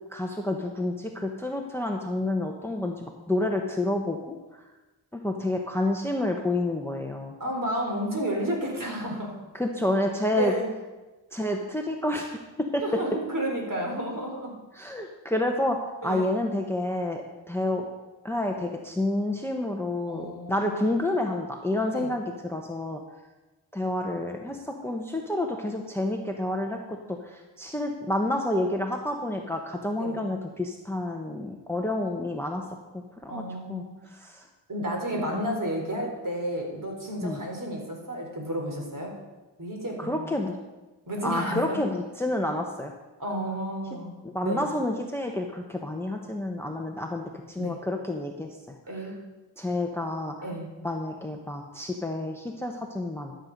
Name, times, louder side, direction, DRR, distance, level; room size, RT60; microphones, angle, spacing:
voice 1, 0.1-4.4 5.1-7.4 9.5-10.5 11.3-12.4 12.7-12.8 14.7-15.8 16.0-17.8 18.2-23.0 23.7-32.6 32.9-33.4 33.7-33.8 34.1-34.4 35.1-35.4 37.2-37.4 40.0-40.6 41.2-42.9 44.2-48.8 49.6-50.3 50.8-53.3, left 1 dB, 5° left, 2 dB, 1.1 m, -29 dB
voice 2, 7.4-9.3 10.3-10.7 12.8-14.5 16.0-16.3 20.1-20.9 21.9-22.1 30.0-30.2 33.3-34.0 34.7-39.1 39.6-40.3 41.1-41.8 43.2-44.1 44.4-44.6 47.6-47.8 48.9-49.1 50.4-50.7, equal, 40° right, 0 dB, 4.0 m, -31 dB
12.5 x 7.8 x 5.3 m, 1.1 s
cardioid pair, 65°, 47 cm